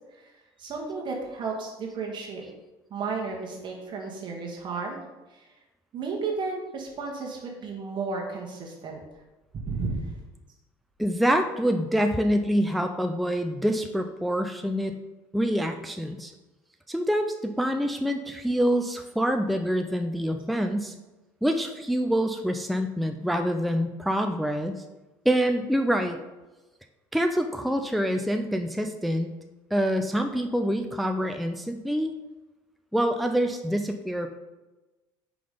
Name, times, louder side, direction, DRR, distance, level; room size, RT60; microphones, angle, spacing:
voice 1, 0.6-2.4 2.9-5.0 5.3-5.4 5.9-9.0 9.6-10.0 22.4-22.5, right 4 dB, 50° right, -1 dB, 1.3 m, -33 dB
voice 2, 11.0-14.9 15.3-16.3 16.9-21.0 21.4-24.8 25.3-26.2 27.1-29.3 29.7-32.2 32.9-34.3, equal, ahead, 5 dB, 0.4 m, -26 dB
5.1 x 3.9 x 5.1 m, 1.1 s
supercardioid pair, 90°, 10 cm